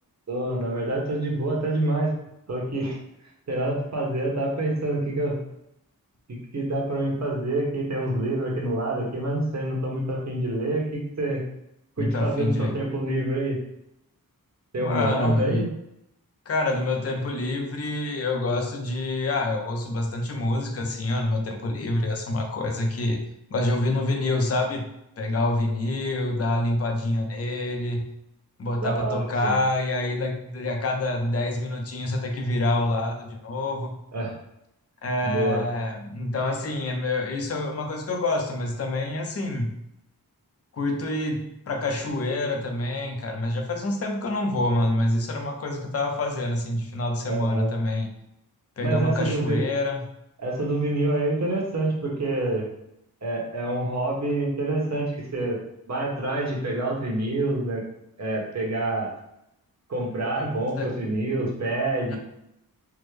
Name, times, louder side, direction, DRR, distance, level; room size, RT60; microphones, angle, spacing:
voice 1, 0.3-2.1 2.5-3.0 3.5-5.4 6.3-11.4 12.0-13.6 14.7-15.7 28.8-29.5 34.1-34.4 35.2-35.6 47.2-47.7 48.8-49.6 50.4-52.7 53.2-55.6 55.9-57.8 58.2-59.1 59.9-62.2, right 2 dB, 45° right, -2 dB, 1.0 m, -27 dB
voice 2, 12.0-12.8 14.8-15.6 16.5-23.2 23.5-24.9 25.2-28.0 28.6-33.9 35.0-39.7 40.7-48.1 48.8-50.0 60.4-60.9 62.1-62.2, left 2 dB, 40° left, 3 dB, 0.6 m, -27 dB
3.5 x 2.0 x 3.2 m, 0.81 s
wide cardioid pair, 90°, 37 cm